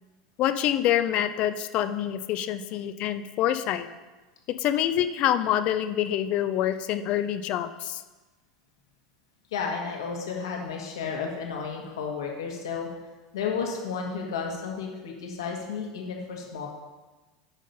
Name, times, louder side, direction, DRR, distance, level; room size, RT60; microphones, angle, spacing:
voice 1, 0.4-3.9 4.6-8.0, left 11 dB, 50° left, 10 dB, 0.5 m, -26 dB
voice 2, 9.5-12.9 13.3-16.7, left 5 dB, 80° left, 0 dB, 1.6 m, -32 dB
9.0 x 5.2 x 5.4 m, 1.2 s
hypercardioid pair, 95°, 2 cm